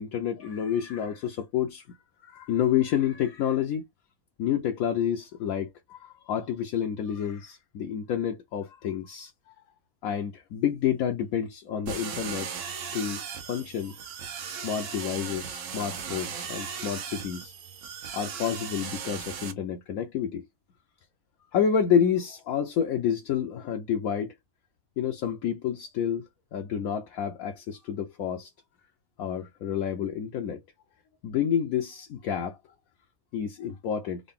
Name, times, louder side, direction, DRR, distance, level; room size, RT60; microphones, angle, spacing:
voice 1, 0.0-2.0 2.2-3.8 4.4-9.3 10.0-12.5 12.9-14.1 14.4-17.5 18.1-20.4 21.5-24.3 25.0-28.5 29.2-30.6 31.2-32.6 33.3-34.2, left 8 dB, 70° left, 1.0 m, -29 dB
sound 1, 11.9-19.5, right 7 dB, 60° right, 1.0 m, -37 dB
3.8 x 2.2 x 3.5 m
omnidirectional pair, 1.6 m